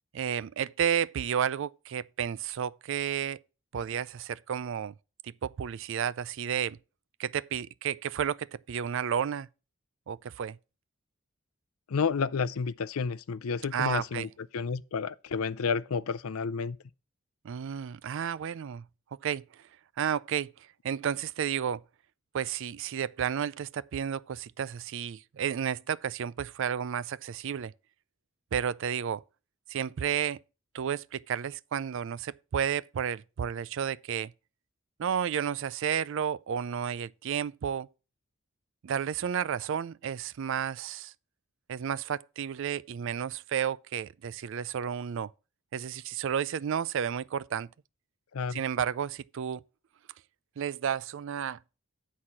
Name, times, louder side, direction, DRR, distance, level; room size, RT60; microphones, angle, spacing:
voice 1, 0.1-3.4 3.7-4.9 5.2-6.8 7.2-9.5 10.1-10.6 13.7-14.3 17.4-18.8 19.2-19.4 20.0-20.5 20.8-21.8 22.3-27.7 28.5-29.2 29.7-30.4 30.7-34.3 35.0-37.9 38.8-41.1 41.7-45.3 45.7-47.7 48.5-49.6 50.6-51.6, right 8 dB, 60° right, 0.4 m, -32 dB
voice 2, 11.9-14.3 14.5-16.8 48.3-48.6, left 5 dB, 85° left, 0.5 m, -30 dB
9.5 x 4.2 x 7.3 m
head